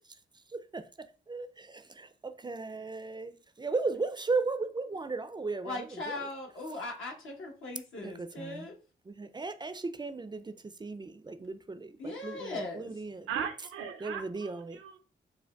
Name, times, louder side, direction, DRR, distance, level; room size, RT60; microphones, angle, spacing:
voice 1, 0.5-6.3 8.0-8.7 9.1-13.3 14.0-14.8, right 3 dB, 20° right, 0.3 m, -36 dB
voice 2, 5.6-8.7 12.0-12.9, left 2 dB, 70° left, 1.0 m, -39 dB
voice 3, 13.3-15.0, right 8 dB, 85° right, 0.5 m, -38 dB
5.0 x 2.2 x 2.2 m
supercardioid pair, 50°, 21 cm